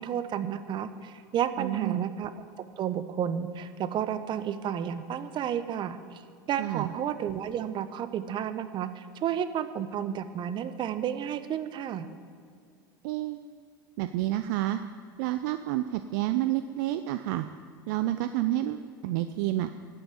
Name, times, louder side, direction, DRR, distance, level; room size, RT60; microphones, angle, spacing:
voice 1, 0.0-2.3 2.8-6.0 6.5-12.1, right 9 dB, 45° right, 11 dB, 1.1 m, -31 dB
voice 2, 1.6-2.0 6.6-6.9 13.0-13.7 14.0-14.8 15.2-17.5 17.9-19.7, right 14 dB, 65° right, 10 dB, 0.6 m, -29 dB
12.5 x 9.6 x 8.4 m, 2.3 s
hypercardioid pair, 80°, 11 cm